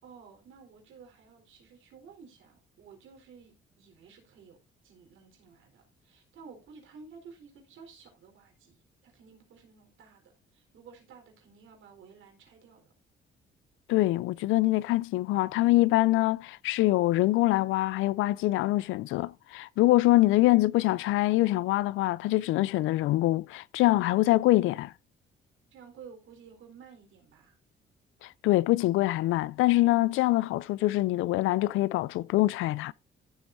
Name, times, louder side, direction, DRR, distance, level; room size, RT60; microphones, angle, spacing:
voice 1, 0.0-12.9 25.7-27.6, right 5 dB, 80° right, 4.2 m, -53 dB
voice 2, 13.9-24.9 28.2-32.9, left 17 dB, 90° left, 0.4 m, -24 dB
14.5 x 7.8 x 2.7 m
cardioid pair, 90°, 20 cm